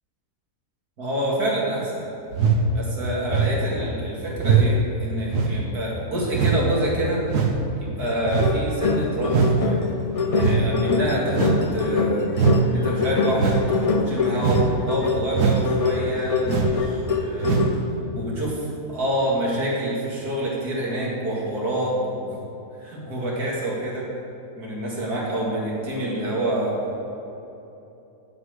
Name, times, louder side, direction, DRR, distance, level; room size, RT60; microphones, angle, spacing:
voice 1, 1.0-2.1 2.7-7.2 7.9-9.8 10.3-12.3 12.7-17.6 18.2-18.6 18.9-22.3 22.8-24.1 24.6-26.8, right 1 dB, 70° right, -4 dB, 2.8 m, -27 dB
sound 1, 2.3-2.6 3.3-3.6 4.4-4.7 5.3-5.6 6.3-6.6 7.3-7.6 8.3-8.6 9.3-9.6 10.4-10.6 11.3-11.6 12.3-12.6 13.3-13.7 14.4-14.7 15.3-15.7 16.4-16.8 17.4-17.7 18.3-18.4, right 6 dB, 90° right, 1.6 m, -21 dB
sound 2, 8.0-17.9, left 4 dB, 55° left, 0.4 m, -25 dB
8.1 x 7.9 x 8.0 m, 3.0 s
omnidirectional pair, 1.7 m